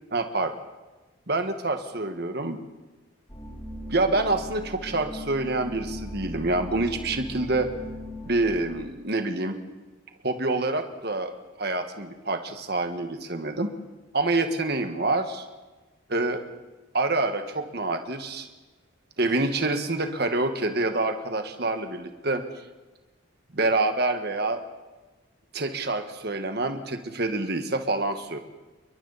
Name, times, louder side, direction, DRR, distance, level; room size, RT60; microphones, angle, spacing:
voice 1, 0.1-0.6 1.3-2.6 3.9-7.7 8.2-9.6 10.2-13.7 14.1-15.4 16.1-16.4 16.9-18.5 19.2-22.4 23.5-24.6 25.5-28.4, right 2 dB, 50° right, 6 dB, 1.6 m, -27 dB
sound 1, 3.3-8.6, equal, 15° left, 3.6 m, -38 dB
29.0 x 22.5 x 4.2 m, 1.2 s
head